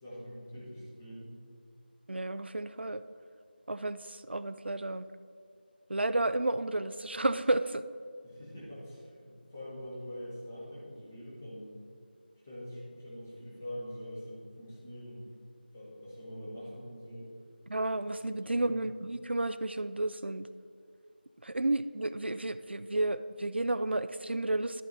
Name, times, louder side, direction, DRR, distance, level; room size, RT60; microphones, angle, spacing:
voice 1, 0.0-1.3 8.2-11.8 12.4-15.3 15.7-17.3 18.2-18.8, equal, 10° left, -7 dB, 1.0 m, -44 dB
voice 2, 2.1-3.0 3.7-5.0 5.9-7.8 17.7-20.5 21.4-24.8, right 2 dB, 85° right, 12 dB, 0.4 m, -32 dB
11.5 x 8.4 x 2.7 m, 2.2 s
figure-of-eight pair, 175°, 6 cm